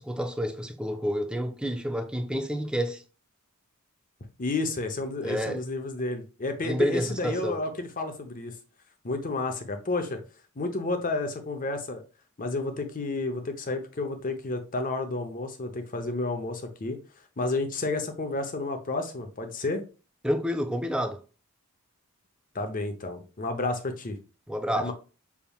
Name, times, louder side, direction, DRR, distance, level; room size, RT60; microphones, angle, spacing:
voice 1, 0.0-3.0 5.2-5.6 6.6-7.6 20.2-21.2 24.5-24.9, equal, 5° right, 0.4 m, -29 dB
voice 2, 4.4-8.5 9.0-10.2 10.6-12.0 12.4-17.0 17.4-19.8 22.5-24.2 24.8-24.9, left 2 dB, 35° left, 0.8 m, -31 dB
5.8 x 3.5 x 2.3 m
head